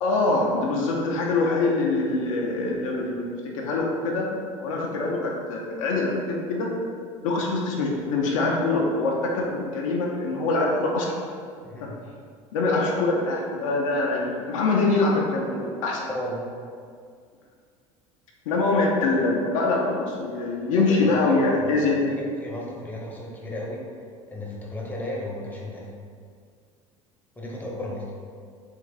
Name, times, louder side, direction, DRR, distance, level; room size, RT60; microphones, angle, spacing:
voice 1, 0.0-4.3 4.6-6.7 7.2-11.2 11.8-11.9 12.5-16.0 18.5-21.9, left 3 dB, 70° left, -1 dB, 0.6 m, -24 dB
voice 2, 11.6-11.9 16.1-16.5 20.8-21.3 21.6-21.7 22.0-23.8 24.3-25.9 27.4-28.1, left 1 dB, 10° left, -3 dB, 0.9 m, -34 dB
3.6 x 2.6 x 3.9 m, 2.2 s
hypercardioid pair, 70°, 18 cm